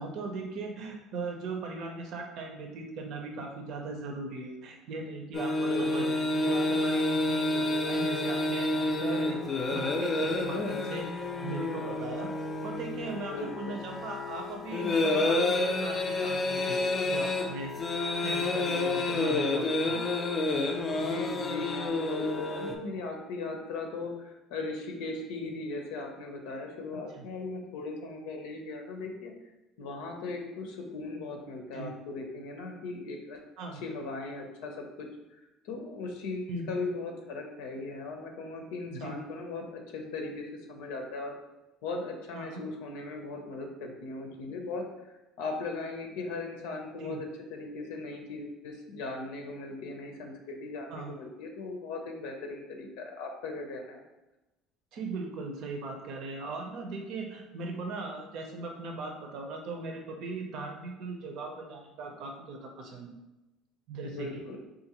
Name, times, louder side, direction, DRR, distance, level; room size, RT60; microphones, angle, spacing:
voice 1, 0.0-6.1 6.3-8.7 9.0-9.4 9.7-12.3 12.6-16.8 17.0-17.7 18.2-20.0 27.1-27.2 31.7-31.9 33.6-33.8 36.5-36.7 38.9-39.2 42.3-42.6 47.0-47.2 50.9-51.1 54.9-63.1 63.9-64.3, right 3 dB, 60° right, 2 dB, 0.7 m, -39 dB
sound 1, 5.3-22.7, left 2 dB, 30° left, 0.4 m, -29 dB
voice 2, 5.6-6.2 13.2-13.8 20.9-29.3 29.8-33.4 33.8-35.1 35.6-41.3 41.8-54.0 64.0-64.6, left 3 dB, 85° left, 2 dB, 0.6 m, -38 dB
3.7 x 2.5 x 2.9 m, 1.0 s
cardioid pair, 115°, 0 cm